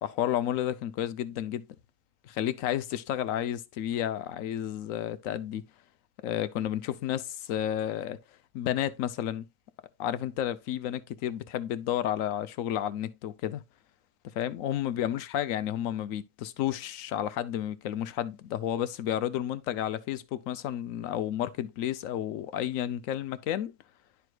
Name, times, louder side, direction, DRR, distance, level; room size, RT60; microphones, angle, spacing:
voice 1, 0.0-1.6 2.2-5.6 6.2-8.2 8.5-9.5 10.0-13.6 14.4-23.7, left 11 dB, 70° left, 1.0 m, -31 dB
11.5 x 4.6 x 2.3 m
omnidirectional pair, 1.6 m